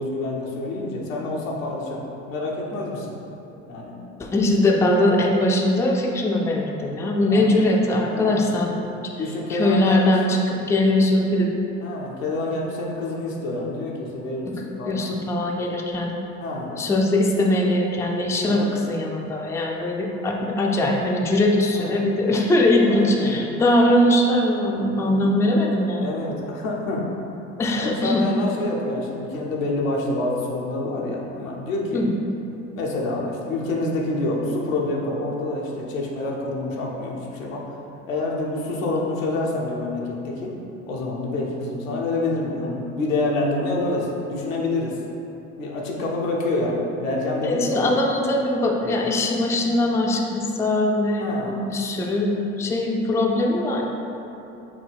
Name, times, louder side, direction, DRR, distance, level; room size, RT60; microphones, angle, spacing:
voice 1, 0.0-2.0 2.3-3.2 3.7-3.9 4.4-4.5 7.3-7.6 8.1-8.5 9.2-10.1 11.8-15.1 16.4-16.7 18.4-18.7 21.7-21.9 22.8-23.4 24.9-25.2 26.0-27.0 27.8-32.0 32.8-37.6 38.1-40.5 40.9-45.0 45.6-48.0 49.5-49.6 51.2-51.5, left 2 dB, 90° left, -3 dB, 0.7 m, -27 dB
voice 2, 4.2-8.9 9.5-11.5 14.5-14.6 14.9-16.1 16.8-26.1 27.6-28.2 31.9-32.1 47.4-53.8, left 1 dB, 10° left, 0 dB, 0.4 m, -21 dB
6.0 x 2.2 x 3.4 m, 3.0 s
hypercardioid pair, 70°, 39 cm